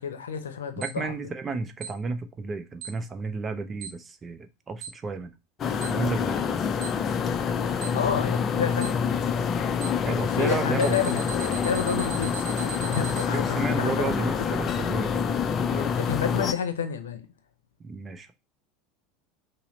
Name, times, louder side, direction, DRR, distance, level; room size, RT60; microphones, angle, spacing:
voice 1, 0.0-1.1 7.9-9.0 10.2-14.7 15.7-17.2, left 7 dB, 75° left, 0.6 m, -30 dB
voice 2, 0.8-5.3 5.9-6.4 10.0-11.1 13.3-15.2 15.6-15.8 17.8-18.3, right 3 dB, 25° right, 0.6 m, -32 dB
Alarm, 0.8-0.9 1.8-1.9 2.8-2.9 3.8-3.9 4.8-4.9 5.8-5.9 6.8-6.9 7.8-7.9 8.8-8.9 9.8-9.9 10.8-13.2, right 7 dB, 50° right, 0.9 m, -36 dB
sound 1, 5.6-16.5, left 6 dB, 35° left, 0.4 m, -27 dB
5.5 x 2.0 x 3.9 m
figure-of-eight pair, 75°, 0 cm